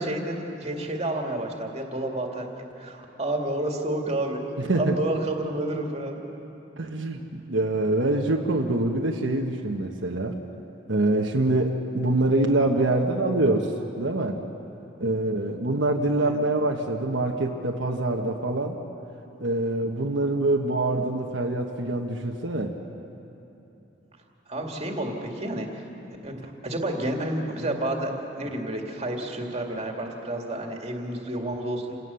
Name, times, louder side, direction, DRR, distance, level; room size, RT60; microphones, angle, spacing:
voice 1, 0.0-6.2 16.2-16.4 24.5-25.9 26.2-32.0, right 1 dB, 35° right, 1 dB, 2.3 m, -30 dB
voice 2, 4.6-5.0 6.8-10.3 10.9-13.7 14.0-14.4 15.0-18.8 19.4-22.7, right 2 dB, 70° right, 1 dB, 1.3 m, -25 dB
28.0 x 17.5 x 6.9 m, 3.0 s
head